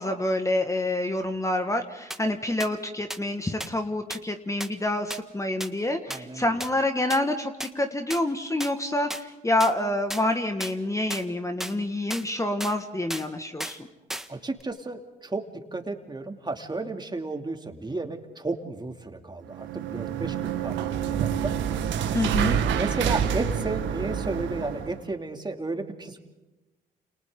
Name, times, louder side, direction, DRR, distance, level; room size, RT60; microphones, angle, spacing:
voice 1, 0.0-13.9 22.1-22.6, left 1 dB, 15° left, 6 dB, 1.9 m, -27 dB
sound 1, 2.1-2.2 2.6-2.7 3.1-3.2 3.6-3.7 4.1-4.2 4.6-4.7 5.1-5.2 5.6-5.7 6.1-6.2 6.6-6.7 7.1-7.2 7.6-7.7 8.1-8.2 8.6-8.7 9.1-9.2 9.6-9.7 10.1-10.2 10.6-10.7 11.1-11.2 11.6-11.7 12.1-12.2 12.6-12.8 13.1-13.3 13.6-13.8 14.1-14.3 14.6-14.7, equal, ahead, 1.7 m, -34 dB
voice 2, 6.1-6.5 14.3-15.4 15.7-21.5 22.7-26.2, right 2 dB, 20° right, 4 dB, 2.8 m, -33 dB
sound 2, 19.5-25.0, right 8 dB, 70° right, 1.8 m, -27 dB
30.0 x 28.5 x 3.9 m, 1.1 s
hypercardioid pair, 50°, 20 cm